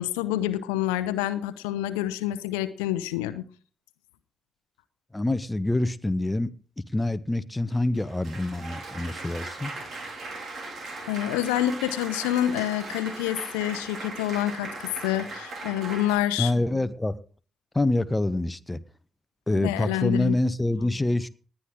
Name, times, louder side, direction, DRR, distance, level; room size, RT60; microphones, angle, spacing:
voice 1, 0.0-3.5 11.1-16.5 19.6-20.4, left 13 dB, 75° left, 0.8 m, -27 dB
voice 2, 5.1-6.5 6.9-9.7 16.4-17.2 17.7-18.8 19.5-21.3, left 2 dB, 15° left, 0.9 m, -26 dB
Applause, 7.7-16.2, right 2 dB, 50° right, 4.1 m, -38 dB
19.5 x 10.0 x 3.7 m
figure-of-eight pair, 45°, 0 cm